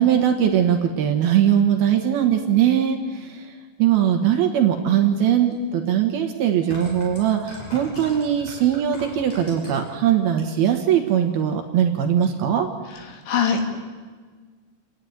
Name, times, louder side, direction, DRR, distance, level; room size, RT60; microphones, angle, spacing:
voice 1, 0.0-3.5 3.8-12.7, right 9 dB, 70° right, 4 dB, 2.8 m, -20 dB
sound 1, 5.5-5.6 6.5-9.9 10.3-10.8 11.1-11.2, equal, 35° left, 7.5 m, -40 dB
voice 2, 12.9-13.7, left 6 dB, 75° left, 3 dB, 4.5 m, -24 dB
29.0 x 11.0 x 9.5 m, 1.5 s
omnidirectional pair, 5.3 m